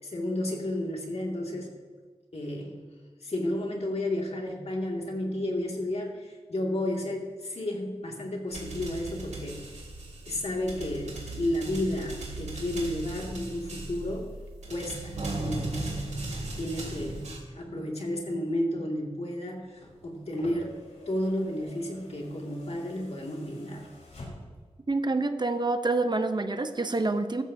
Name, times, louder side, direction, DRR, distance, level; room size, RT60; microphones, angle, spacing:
voice 1, 0.0-1.7 2.3-2.8 3.2-9.8 10.3-14.3 14.7-15.8 16.6-20.8 21.1-23.9, left 1 dB, 65° left, 0 dB, 2.4 m, -32 dB
sound 1, 8.5-17.4, right 2 dB, 90° right, 2.7 m, -37 dB
sound 2, 19.6-24.7 26.0-26.1, left 1 dB, 90° left, 4.1 m, -48 dB
voice 2, 24.9-27.4, right 2 dB, 40° right, 8 dB, 0.8 m, -27 dB
15.0 x 13.5 x 2.8 m, 1.5 s
wide cardioid pair, 90°, 11 cm